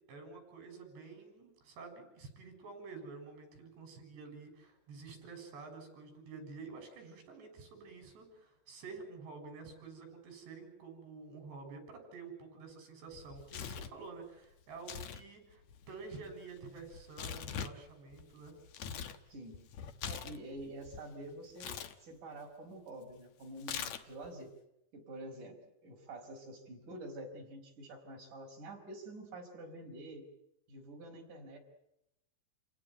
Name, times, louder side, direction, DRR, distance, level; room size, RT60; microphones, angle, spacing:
voice 1, 0.1-18.5, right 4 dB, 70° right, 5 dB, 8.7 m, -49 dB
Tearing, 13.1-14.0 14.8-15.2 15.5-19.2 19.5-21.0 21.6-21.9 23.6-24.3, left 8 dB, 85° left, 1.5 m, -43 dB
voice 2, 19.3-19.7 20.0-21.7 22.0-24.5 24.9-25.6 25.8-30.3 30.7-31.6, right 1 dB, 45° right, 1 dB, 6.4 m, -47 dB
29.0 x 17.5 x 9.2 m, 0.84 s
omnidirectional pair, 5.1 m